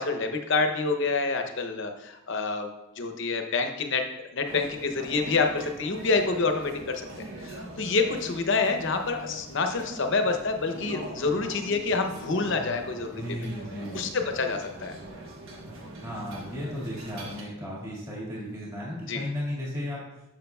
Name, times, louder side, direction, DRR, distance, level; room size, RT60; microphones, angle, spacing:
voice 1, 0.0-2.7 3.0-4.0 4.3-7.1 7.4-13.2 13.9-15.0 19.1-19.2, left 4 dB, 60° left, 5 dB, 0.7 m, -27 dB
sound 1, 4.5-17.4, right 1 dB, 75° right, 1.3 m, -42 dB
voice 2, 13.2-14.0 16.0-20.0, left 1 dB, 15° right, -6 dB, 1.8 m, -34 dB
9.4 x 6.3 x 2.3 m, 0.94 s
head